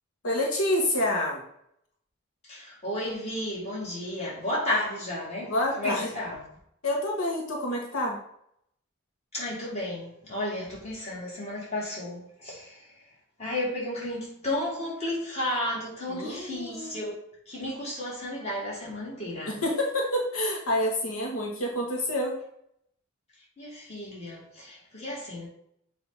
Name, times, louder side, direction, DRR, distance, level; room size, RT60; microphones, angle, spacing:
voice 1, 0.2-1.4 5.4-6.1 6.8-8.2 16.1-17.0 19.5-22.3, left 1 dB, 80° left, 1.2 m, -28 dB
voice 2, 2.4-6.4 9.3-12.9 13.4-17.2 17.5-19.5 23.6-25.5, left 1 dB, 30° left, 2.2 m, -33 dB
7.0 x 2.8 x 5.3 m
head